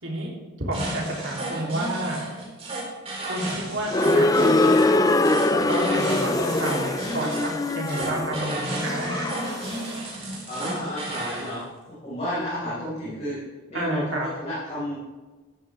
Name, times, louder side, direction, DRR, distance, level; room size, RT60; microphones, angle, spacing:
voice 1, 0.0-2.4 3.2-5.0 5.4-9.3 13.7-14.3, right 1 dB, 60° right, -2 dB, 3.4 m, -30 dB
sound 1, 0.7-11.5, right 2 dB, 30° right, 4.2 m, -33 dB
sound 2, 3.9-9.8, left 2 dB, 15° left, 0.4 m, -23 dB
voice 2, 10.5-11.7 12.0-13.4 13.7-15.1, equal, 35° left, -10 dB, 5.2 m, -31 dB
15.0 x 13.0 x 3.6 m, 1.3 s
head